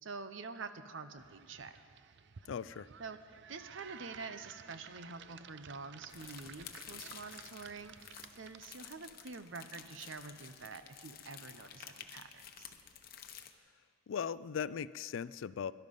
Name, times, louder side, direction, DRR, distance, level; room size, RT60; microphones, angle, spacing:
voice 1, 0.0-1.8 3.0-3.2 3.5-8.0 8.4-12.7, right 4 dB, 90° right, 10 dB, 0.8 m, -47 dB
sound 1, 1.2-8.9, right 7 dB, 65° right, 0.5 m, -54 dB
voice 2, 2.5-2.9 14.1-15.7, left 7 dB, 80° left, 18 dB, 0.4 m, -38 dB
sound 2, 6.1-13.5, left 8 dB, 50° left, 0.9 m, -52 dB
22.0 x 12.0 x 5.4 m, 2.3 s
head